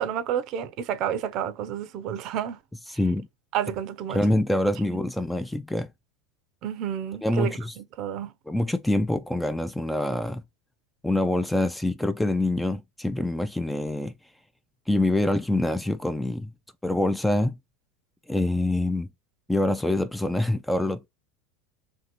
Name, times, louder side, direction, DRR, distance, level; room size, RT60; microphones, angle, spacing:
voice 1, 0.0-2.6 3.5-4.2 6.6-8.3, right 9 dB, 50° right, 0.6 m, -30 dB
voice 2, 2.9-3.3 4.1-5.9 7.2-7.7 8.5-10.4 11.0-14.1 14.9-16.5 16.8-17.6 18.3-19.1 19.5-21.1, left 1 dB, 5° left, 0.3 m, -25 dB
2.8 x 2.7 x 2.9 m
hypercardioid pair, 105°, 0 cm